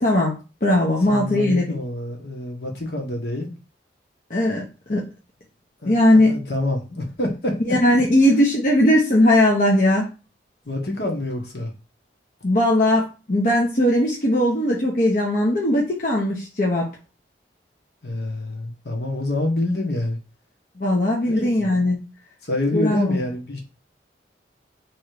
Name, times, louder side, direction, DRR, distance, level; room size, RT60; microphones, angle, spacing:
voice 1, 0.0-1.7 4.3-4.6 4.9-5.0 5.8-6.3 7.7-10.1 12.4-16.9 20.8-22.0 22.7-23.2, left 1 dB, 45° left, 0.8 m, -19 dB
voice 2, 1.1-3.6 5.8-7.6 10.6-11.7 18.0-20.2 21.2-21.5 22.4-23.6, left 1 dB, 65° left, 1.3 m, -27 dB
3.5 x 3.1 x 4.8 m
head